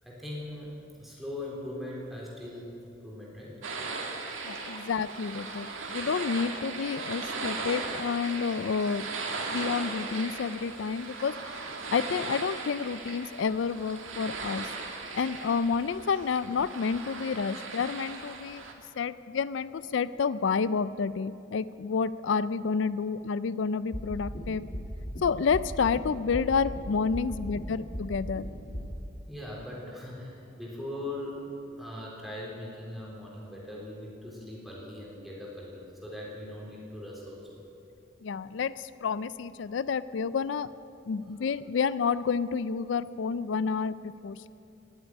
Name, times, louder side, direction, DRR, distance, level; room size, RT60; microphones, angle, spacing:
voice 1, 0.0-3.6 27.0-27.2 29.3-31.5 31.8-37.6 41.0-41.4, left 1 dB, ahead, -5 dB, 3.6 m, -40 dB
sound 1, 3.6-18.7, right 3 dB, 90° right, 1.9 m, -38 dB
voice 2, 4.4-9.1 9.5-11.6 11.9-14.7 15.1-18.6 19.0-24.7 25.2-28.4 38.2-40.7 41.1-44.5, left 5 dB, 70° left, 16 dB, 0.4 m, -29 dB
sound 2, 23.9-24.4 24.7-25.2 25.5-26.0 26.3-26.8 27.1-27.6 27.9-28.4 28.7-28.8, equal, 45° left, 2.7 m, -36 dB
18.0 x 8.1 x 9.7 m, 2.7 s
head